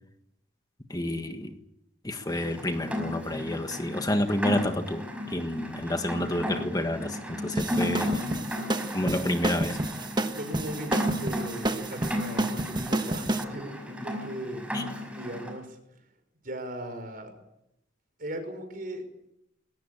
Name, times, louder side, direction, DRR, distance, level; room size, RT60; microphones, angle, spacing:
voice 1, 0.9-1.6 2.0-5.0 5.3-8.3 8.9-9.8 14.7-14.8, left 1 dB, 20° left, 6 dB, 1.6 m, -29 dB
Rain, 2.3-15.6, equal, 5° right, 5.5 m, -35 dB
sound 1, 7.5-13.4, right 1 dB, 25° right, 1.2 m, -30 dB
voice 2, 10.3-15.8 16.4-17.3 18.2-19.1, right 1 dB, 50° right, 7 dB, 5.7 m, -38 dB
21.5 x 18.5 x 8.7 m, 0.80 s
head